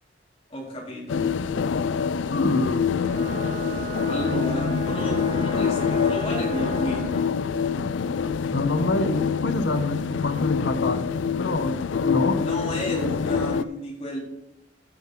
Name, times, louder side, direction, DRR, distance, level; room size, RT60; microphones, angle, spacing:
voice 1, 0.5-1.2 4.0-7.3 12.4-14.2, equal, 30° left, -3 dB, 3.4 m, -32 dB
sound 1, 1.1-13.6, left 6 dB, 90° left, 0.4 m, -26 dB
voice 2, 2.3-3.0 8.5-11.0 11.3-11.7 12.0-12.4, left 2 dB, 75° left, 8 dB, 1.1 m, -26 dB
Bowed string instrument, 3.0-7.3, right 6 dB, 70° right, 3.7 m, -37 dB
13.5 x 7.6 x 3.8 m, 0.90 s
head